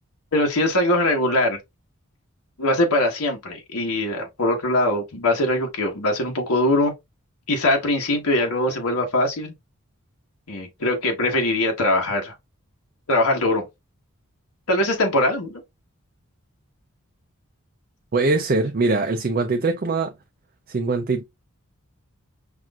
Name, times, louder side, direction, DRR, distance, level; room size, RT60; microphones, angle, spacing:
voice 1, 0.3-1.6 2.6-6.9 7.5-9.5 10.5-12.3 13.1-13.6 14.7-15.6, left 1 dB, 85° left, 1.2 m, -22 dB
voice 2, 18.1-20.1 20.7-21.2, right 3 dB, 40° right, 0.4 m, -22 dB
5.9 x 2.6 x 2.3 m
head